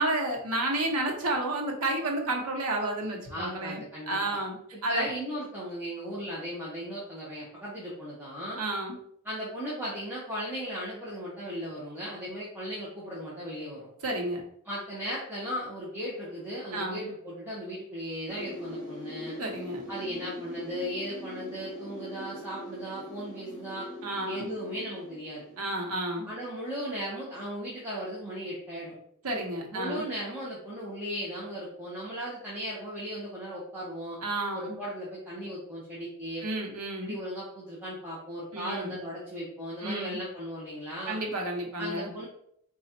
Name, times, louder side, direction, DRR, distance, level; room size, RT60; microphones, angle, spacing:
voice 1, 0.0-4.5 4.8-5.1 8.6-9.0 14.0-14.4 16.7-17.1 19.4-19.8 24.0-24.5 25.6-26.3 29.2-30.0 34.2-34.8 36.4-37.2 38.5-39.0 39.8-40.2 41.1-42.1, right 2 dB, 85° right, 0 dB, 1.0 m, -31 dB
voice 2, 3.3-4.2 4.9-8.6 9.2-13.9 14.6-19.3 19.9-23.9 24.2-25.5 26.3-28.9 29.7-34.2 34.5-36.5 37.0-41.2 41.8-42.3, equal, 10° right, -8 dB, 0.9 m, -36 dB
sound 1, 18.3-26.3 26.6-26.7, equal, 40° right, 1.1 m, -42 dB
4.0 x 2.4 x 4.3 m, 0.70 s
head